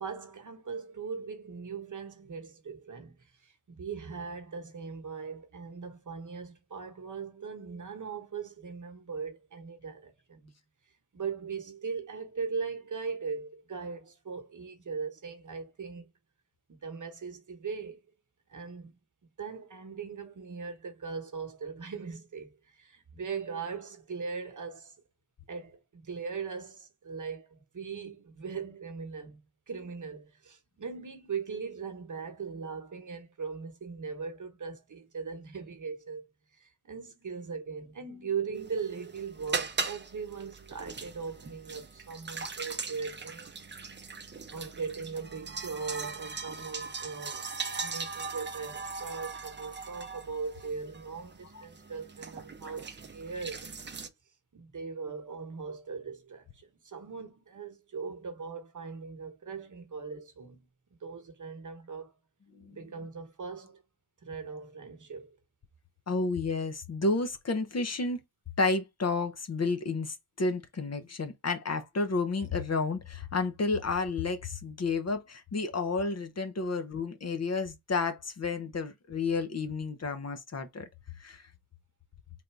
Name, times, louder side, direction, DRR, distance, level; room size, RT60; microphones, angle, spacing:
voice 1, 0.0-10.5 10.8-16.1 16.7-18.0 18.5-19.0 19.4-25.0 25.5-36.2 36.5-43.7 44.5-47.5 47.8-53.7 54.5-60.7 61.0-62.2 62.7-63.8 64.2-65.4, right 5 dB, 50° right, 1.1 m, -39 dB
sound 1, 38.6-54.1, right 4 dB, 30° right, 0.6 m, -40 dB
voice 2, 66.1-68.2 68.6-80.8 81.2-81.4, left 3 dB, 40° left, 0.7 m, -31 dB
3.4 x 2.6 x 4.5 m
wide cardioid pair, 90°, 39 cm